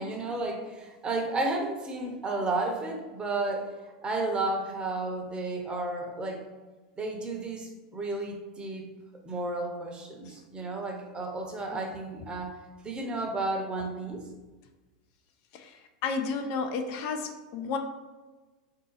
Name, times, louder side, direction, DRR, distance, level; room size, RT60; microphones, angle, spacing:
voice 1, 0.0-3.7 4.0-6.4 7.0-8.9 9.2-12.5 12.8-14.2, right 2 dB, 20° right, 1 dB, 0.9 m, -32 dB
voice 2, 15.5-17.8, left 5 dB, 55° left, 6 dB, 0.4 m, -33 dB
3.7 x 2.8 x 3.9 m, 1.2 s
hypercardioid pair, 100°, 4 cm